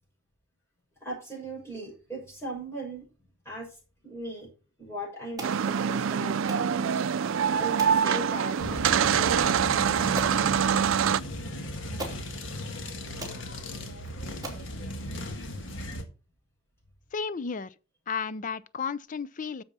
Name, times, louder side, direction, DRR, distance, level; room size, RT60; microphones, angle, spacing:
voice 1, 1.0-3.1 3.4-4.5 4.8-7.0 7.5-10.5, right 1 dB, 15° left, 6.0 m, -39 dB
sound 1, 5.4-5.6 6.5-6.7 7.8-8.0 8.9-9.1 9.6-9.7 10.2-10.4 11.5-11.6 12.0-12.2 12.9-13.0 13.2-13.4 14.0-14.1 14.4-14.7, right 1 dB, 20° right, 2.9 m, -38 dB
sound 2, 5.4-11.2, right 7 dB, 85° right, 0.4 m, -25 dB
sound 3, 8.6-16.0, left 1 dB, 70° left, 1.6 m, -37 dB
voice 2, 17.1-17.7 18.1-19.6, left 5 dB, 40° left, 0.5 m, -33 dB
11.0 x 7.1 x 4.2 m
head